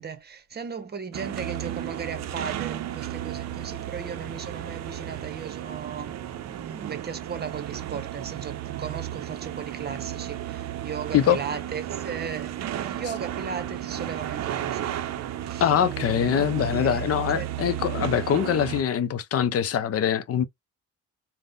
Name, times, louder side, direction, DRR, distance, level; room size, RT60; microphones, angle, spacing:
voice 1, 0.0-14.9 15.4-15.7 16.7-17.8, right 6 dB, 35° right, 0.9 m, -37 dB
sound 1, 1.1-18.8, right 12 dB, 60° right, 0.5 m, -33 dB
voice 2, 15.6-20.4, left 9 dB, 50° left, 0.5 m, -23 dB
3.4 x 2.1 x 2.5 m
cardioid pair, 90°, 30 cm